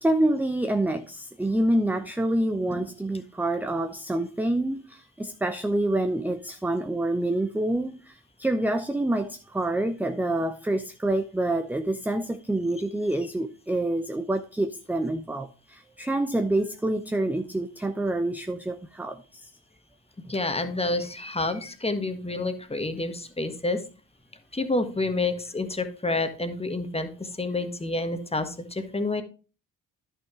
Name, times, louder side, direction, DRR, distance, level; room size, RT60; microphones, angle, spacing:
voice 1, 0.0-19.5, right 1 dB, 5° right, 0.6 m, -27 dB
voice 2, 20.3-23.8 24.5-29.2, left 2 dB, 15° left, 1.5 m, -29 dB
10.5 x 6.2 x 3.8 m
hypercardioid pair, 50°, 40 cm